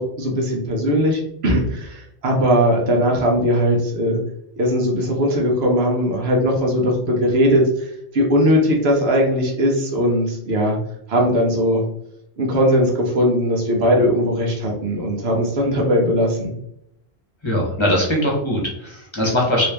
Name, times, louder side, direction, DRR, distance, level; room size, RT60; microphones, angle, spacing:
voice 1, 0.0-4.2 4.6-10.8 11.1-11.8 12.4-16.5, equal, 75° right, 0 dB, 1.1 m, -19 dB
voice 2, 17.4-19.7, left 1 dB, 30° left, -3 dB, 1.0 m, -20 dB
3.1 x 3.0 x 3.2 m, 0.76 s
omnidirectional pair, 1.1 m